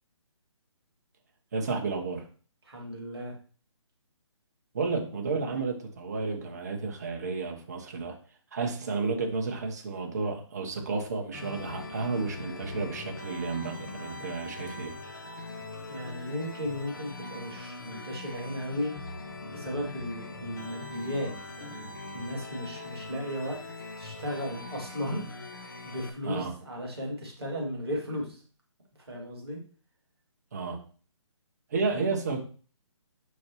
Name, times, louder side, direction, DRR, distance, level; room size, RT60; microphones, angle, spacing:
voice 1, 1.5-2.2 4.7-8.2 8.5-14.9 26.2-26.5 30.5-30.8 31.7-32.4, right 4 dB, 35° right, 3 dB, 1.1 m, -32 dB
voice 2, 2.6-3.3 15.9-18.9 19.5-21.3 21.6-23.6 24.0-25.2 25.5-28.4 29.1-29.6 31.9-32.0, equal, ahead, -21 dB, 0.3 m, -35 dB
sound 1, 11.3-26.1, left 3 dB, 40° left, 1.0 m, -42 dB
6.9 x 6.3 x 3.1 m, 0.40 s
hypercardioid pair, 175°, 16 cm